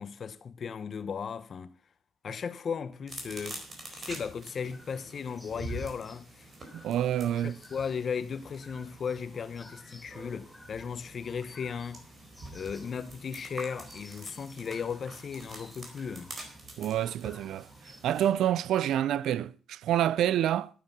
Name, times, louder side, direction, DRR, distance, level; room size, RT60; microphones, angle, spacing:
voice 1, 0.0-1.7 2.2-3.6 3.9-6.5 7.3-12.0 12.5-16.3, left 6 dB, 50° left, 1.1 m, -36 dB
sound 1, 3.1-18.3, right 2 dB, 40° right, 4.4 m, -46 dB
sound 2, 4.5-18.5, left 1 dB, 10° left, 2.7 m, -56 dB
voice 2, 6.7-7.6 16.8-17.7 18.0-20.7, right 11 dB, 80° right, 0.5 m, -27 dB
11.5 x 9.5 x 6.0 m
cardioid pair, 90°, 0 cm